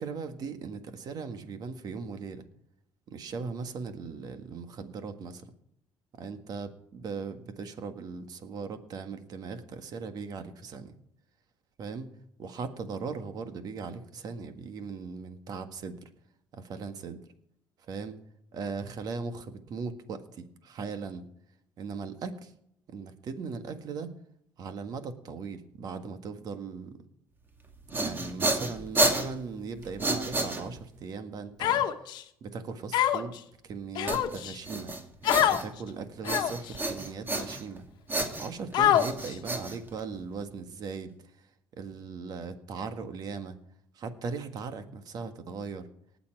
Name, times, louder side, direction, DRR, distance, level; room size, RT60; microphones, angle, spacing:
voice 1, 0.0-2.4 3.1-5.4 6.2-10.9 11.8-12.1 12.4-16.0 16.5-17.2 17.9-18.2 18.5-21.3 21.8-22.5 22.9-24.1 24.6-27.0 27.9-31.9 32.4-33.3 33.6-34.9 35.5-37.8 38.4-41.1 41.8-43.6 43.9-45.9, right 5 dB, 55° right, 9 dB, 1.7 m, -38 dB
sound 1, 27.6-31.0 34.1-35.9 36.2-37.8 38.1-40.3, right 2 dB, 25° right, 2.3 m, -31 dB
Human voice, 31.6-32.2 32.9-33.4 33.9-34.5 35.2-35.6 36.2-36.7 37.4-37.5 38.7-39.3, left 11 dB, 70° left, 1.1 m, -25 dB
19.0 x 7.1 x 4.7 m, 0.73 s
supercardioid pair, 85°, 8 cm